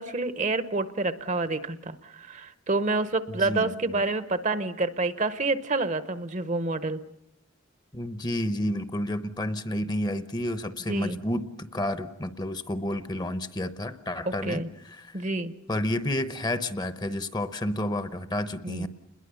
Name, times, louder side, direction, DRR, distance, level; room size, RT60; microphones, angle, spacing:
voice 1, 0.0-7.0 10.9-11.2 14.3-14.7 15.1-15.5 18.6-18.9, right 3 dB, 35° right, 13 dB, 0.8 m, -28 dB
voice 2, 3.3-4.0 7.9-15.2 15.7-18.9, left 1 dB, 20° left, 12 dB, 0.8 m, -30 dB
29.0 x 21.5 x 6.9 m, 0.84 s
head